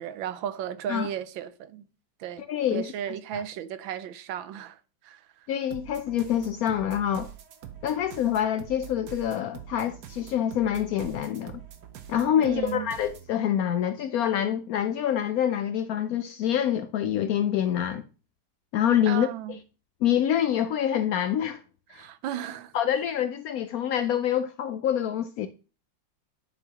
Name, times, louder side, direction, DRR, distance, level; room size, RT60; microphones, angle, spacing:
voice 1, 0.0-1.9 2.2-2.4 2.7-5.5 12.4-12.9 19.1-19.6 21.9-22.7, right 10 dB, 85° right, 1.4 m, -35 dB
voice 2, 2.5-2.9 3.3-3.4 5.5-7.3 7.8-11.5 12.1-18.0 18.7-19.3 20.0-21.6 21.9-22.1 22.7-25.5, left 10 dB, 90° left, 0.7 m, -26 dB
sound 1, 5.7-13.3, right 10 dB, 65° right, 1.4 m, -45 dB
9.9 x 5.8 x 2.9 m
omnidirectional pair, 2.1 m